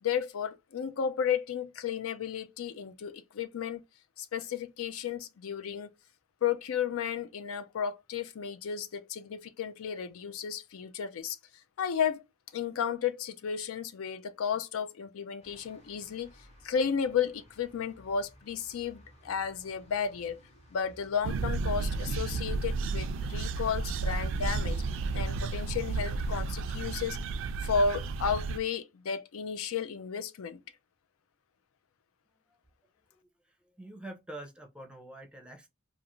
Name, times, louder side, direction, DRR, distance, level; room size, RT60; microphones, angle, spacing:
voice 1, 0.0-3.8 4.2-5.9 6.4-11.4 11.8-12.2 12.5-16.3 16.6-20.4 20.7-24.8 25.1-27.2 27.6-30.6, left 7 dB, 80° left, 0.4 m, -33 dB
sound 1, 15.4-27.1, equal, 30° left, 0.8 m, -57 dB
sound 2, 21.2-28.6, right 4 dB, 65° right, 0.3 m, -32 dB
voice 2, 33.1-35.7, right 1 dB, 5° right, 0.5 m, -46 dB
2.5 x 2.4 x 2.9 m
head